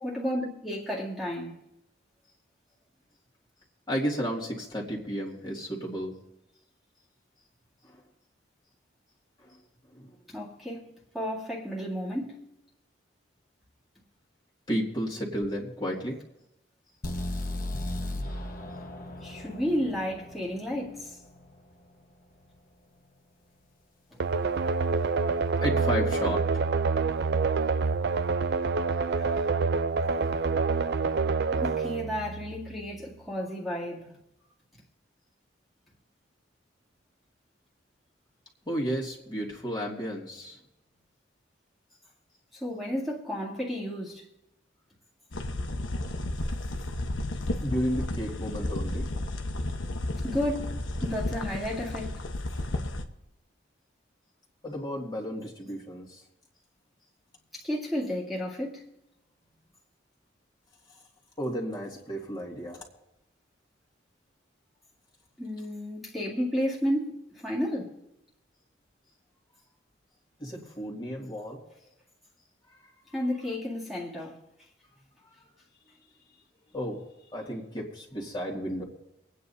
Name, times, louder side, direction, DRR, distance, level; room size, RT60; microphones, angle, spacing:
voice 1, 0.0-1.6 10.3-10.9 11.1-12.4 19.2-21.2 24.1-24.2 29.1-29.5 31.5-34.1 34.7-34.8 42.5-44.2 50.2-52.1 57.5-58.9 65.4-68.0 73.1-74.4, equal, ahead, 2.1 m, -32 dB
voice 2, 3.9-6.1 14.7-16.1 25.6-26.6 38.7-40.6 47.6-49.0 54.6-56.2 61.4-62.8 70.4-71.6 76.7-77.0 77.3-78.8, equal, 25° left, 2.2 m, -32 dB
sound 1, 17.0-21.0, left 1 dB, 45° left, 1.3 m, -35 dB
sound 2, 24.2-32.9, right 4 dB, 60° right, 0.5 m, -27 dB
sound 3, 45.3-53.1, left 1 dB, 85° left, 1.1 m, -32 dB
26.0 x 9.4 x 2.8 m
head